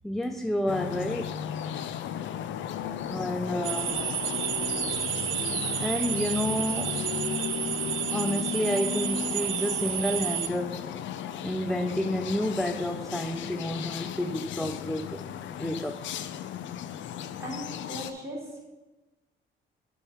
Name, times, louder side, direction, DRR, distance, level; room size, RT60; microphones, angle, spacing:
voice 1, 0.0-1.5 3.1-4.1 5.2-5.5 5.8-7.1 8.1-10.9 11.4-15.3 15.6-16.2, left 1 dB, ahead, 7 dB, 0.3 m, -30 dB
sound 1, 0.7-18.1, left 9 dB, 70° left, 0.5 m, -35 dB
sound 2, 3.6-10.5, right 12 dB, 75° right, 0.6 m, -31 dB
voice 2, 17.4-18.5, equal, 15° right, -4 dB, 2.9 m, -38 dB
7.5 x 5.5 x 4.6 m, 1.1 s
cardioid pair, 90°, 20 cm